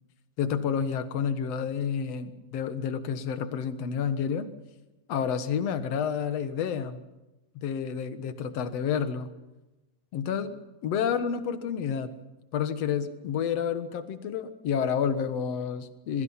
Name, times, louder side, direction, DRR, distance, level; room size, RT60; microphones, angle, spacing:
voice 1, 0.4-4.5 5.1-7.0 7.6-9.3 10.1-10.6 10.8-12.1 12.5-16.2, left 7 dB, 60° left, 9 dB, 2.4 m, -29 dB
27.5 x 22.0 x 5.7 m, 1.0 s
omnidirectional pair, 3.5 m